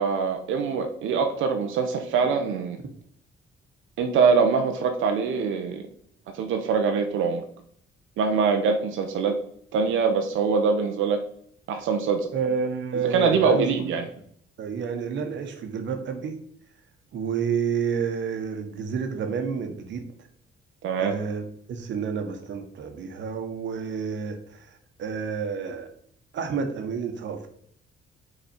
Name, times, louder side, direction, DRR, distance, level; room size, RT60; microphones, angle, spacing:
voice 1, 0.0-2.8 4.0-5.8 6.3-7.4 8.2-9.4 9.7-11.2 11.7-12.3 12.9-14.1 20.8-21.1, right 5 dB, 85° right, 5 dB, 0.7 m, -23 dB
voice 2, 12.3-14.0 14.6-16.3 17.1-20.0 21.0-25.9 26.3-27.5, right 6 dB, 65° right, 6 dB, 1.2 m, -30 dB
5.6 x 4.0 x 4.4 m, 0.63 s
cardioid pair, 90°, 20 cm